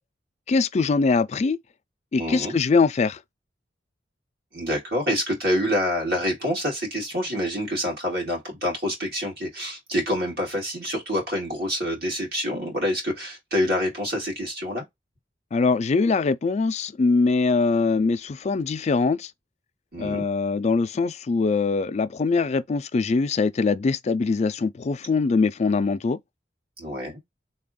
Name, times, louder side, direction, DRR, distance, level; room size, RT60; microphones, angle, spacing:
voice 1, 0.5-1.6 2.1-3.2 15.5-19.3 20.0-26.2, left 4 dB, 40° left, 0.3 m, -22 dB
voice 2, 2.2-2.6 4.5-14.8 19.9-20.3 26.8-27.2, equal, 60° right, 2.2 m, -27 dB
3.5 x 2.2 x 3.7 m
head